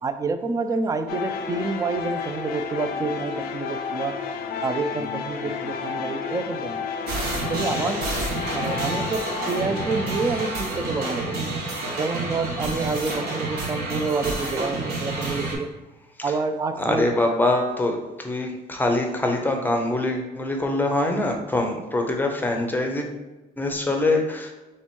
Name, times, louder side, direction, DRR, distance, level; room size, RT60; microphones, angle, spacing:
voice 1, 0.0-4.1 4.6-6.8 7.5-8.0 8.5-11.3 12.0-15.7 16.2-17.1, right 4 dB, 20° right, 9 dB, 0.4 m, -28 dB
sound 1, 1.1-12.0, left 6 dB, 65° left, 0.5 m, -32 dB
sound 2, 7.1-15.6, right 2 dB, 65° right, 1.3 m, -29 dB
voice 2, 16.7-23.2 23.6-24.5, left 2 dB, 10° left, 3 dB, 0.7 m, -24 dB
3.4 x 3.0 x 4.3 m, 1.1 s
cardioid pair, 110°, 17 cm